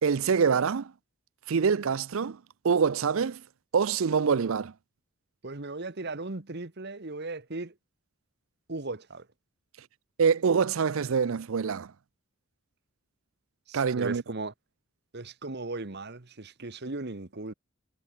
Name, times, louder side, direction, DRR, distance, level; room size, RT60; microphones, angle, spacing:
voice 1, 0.0-0.9 1.5-2.4 2.6-3.4 3.7-4.7 10.2-11.9 13.7-14.2, right 6 dB, 65° right, 0.5 m, -25 dB
voice 2, 5.4-7.7 8.7-9.3 13.7-14.5 15.1-17.5, right 2 dB, 50° right, 1.3 m, -37 dB
head